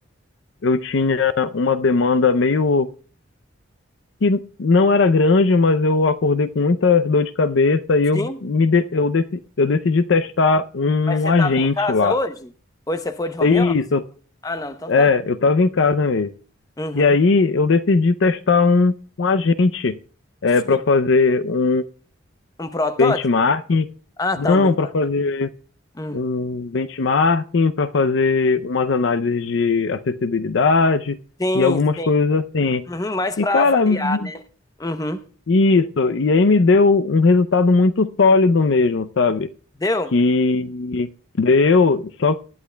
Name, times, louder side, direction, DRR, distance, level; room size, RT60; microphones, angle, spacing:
voice 1, 0.6-2.9 4.2-12.1 13.4-14.0 14.9-16.3 16.9-20.0 20.4-21.8 23.0-23.9 24.4-25.5 26.1-31.2 31.5-32.8 33.4-34.3 35.5-39.5 40.1-41.1 41.4-42.4, left 4 dB, 65° left, 0.5 m, -18 dB
voice 2, 11.1-12.5 12.9-13.7 14.4-15.1 16.8-17.2 20.7-20.8 22.6-23.2 24.2-24.7 26.0-26.2 31.4-32.1 32.9-34.4 34.8-35.2 39.8-40.1, left 2 dB, 20° left, 0.6 m, -25 dB
19.5 x 10.5 x 2.2 m
head